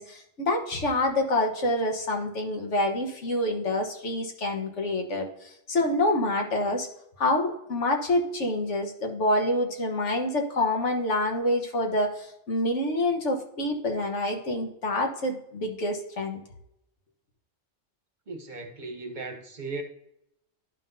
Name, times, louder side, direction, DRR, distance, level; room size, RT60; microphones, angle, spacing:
voice 1, 0.0-6.9 7.2-16.4, left 1 dB, 90° left, 1.6 m, -27 dB
voice 2, 18.3-19.8, right 3 dB, 45° right, 1.0 m, -37 dB
11.0 x 5.6 x 2.7 m
omnidirectional pair, 1.2 m